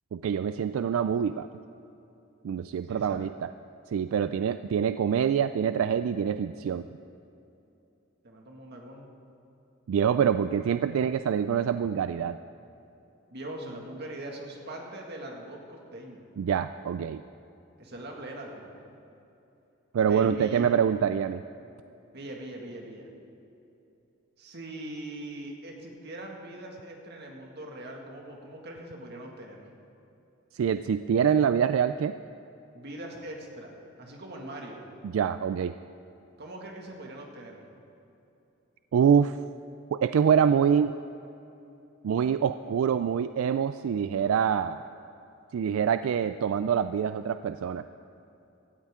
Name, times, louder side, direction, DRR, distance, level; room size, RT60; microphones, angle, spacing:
voice 1, 0.1-1.5 2.4-3.5 3.9-6.9 9.9-12.4 16.4-17.2 19.9-21.4 30.5-32.1 35.0-35.8 38.9-39.4 39.9-41.0 42.0-44.8 45.5-47.8, right 7 dB, 85° right, 11 dB, 0.3 m, -25 dB
voice 2, 2.9-3.3 8.2-9.1 13.3-16.3 17.8-18.8 20.1-20.7 22.1-23.1 24.4-29.7 32.7-34.8 36.4-37.6, right 1 dB, 55° right, 0 dB, 2.0 m, -41 dB
17.0 x 13.5 x 3.7 m, 2.8 s
head